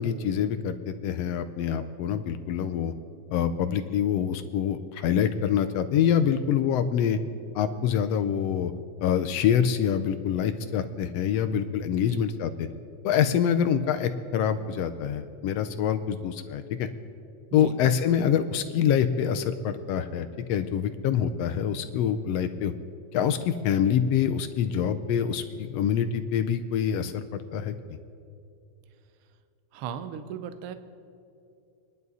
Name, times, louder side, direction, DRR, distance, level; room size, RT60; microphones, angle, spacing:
voice 1, 0.0-2.9 3.3-7.2 7.5-8.7 9.0-12.7 13.0-16.9 17.5-22.7 23.1-27.7, left 8 dB, 75° left, 9 dB, 1.5 m, -26 dB
voice 2, 29.7-30.8, right 8 dB, 75° right, 10 dB, 1.2 m, -37 dB
27.0 x 11.0 x 4.1 m, 2.6 s
omnidirectional pair, 3.4 m